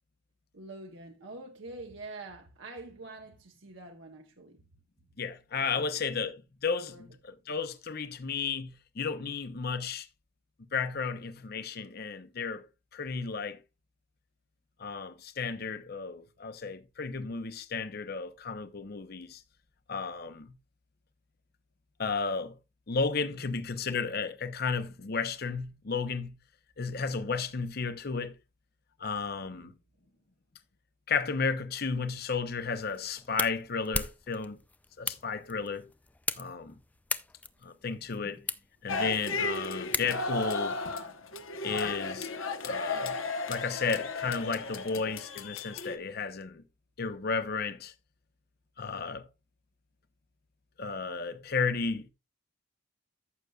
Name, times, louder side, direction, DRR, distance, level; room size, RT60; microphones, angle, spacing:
voice 1, 0.5-4.6 5.8-5.9 6.9-7.1 23.4-23.5 29.4-29.8, right 2 dB, 65° right, 1.0 m, -46 dB
voice 2, 5.2-10.1 10.7-12.6 12.9-13.6 14.8-19.4 19.9-20.5 22.0-22.6 22.9-26.4 26.8-28.4 29.0-29.7 31.1-34.6 35.0-35.9 36.4-36.7 37.6-38.4 38.8-40.8 41.6-42.3 42.6-43.2 43.5-46.6 47.0-47.9 48.8-49.3 50.8-52.1, left 5 dB, 50° left, 0.7 m, -33 dB
sound 1, 32.7-40.5, left 3 dB, 10° left, 0.4 m, -39 dB
sound 2, 38.9-46.0, left 3 dB, 80° left, 1.1 m, -34 dB
14.0 x 6.7 x 2.4 m
head